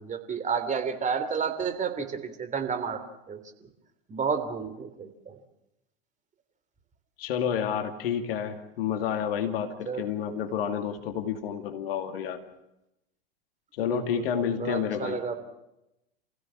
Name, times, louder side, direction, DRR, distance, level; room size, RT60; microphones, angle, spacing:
voice 1, 0.0-3.0 3.3-3.7 4.1-5.4 9.9-10.0 13.8-15.4, right 6 dB, 25° right, 7 dB, 3.2 m, -31 dB
voice 2, 7.2-12.4 13.8-15.2, left 8 dB, 65° left, 7 dB, 2.4 m, -30 dB
28.0 x 16.5 x 7.6 m, 0.88 s
hypercardioid pair, 90°, 31 cm